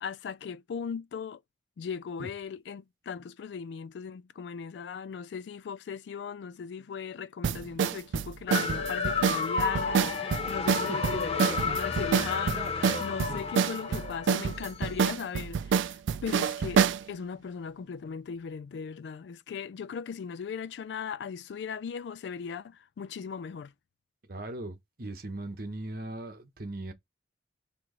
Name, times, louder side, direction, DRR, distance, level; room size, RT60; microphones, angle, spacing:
voice 1, 0.0-1.4 1.8-16.8 17.1-23.7, left 6 dB, 70° left, 0.3 m, -38 dB
sound 1, 7.4-17.0, right 7 dB, 85° right, 0.3 m, -27 dB
sound 2, 8.5-15.1, left 5 dB, 35° left, 0.7 m, -32 dB
voice 2, 10.9-12.1 13.3-13.4 24.3-26.9, right 2 dB, 55° right, 1.0 m, -39 dB
4.5 x 3.0 x 3.8 m
head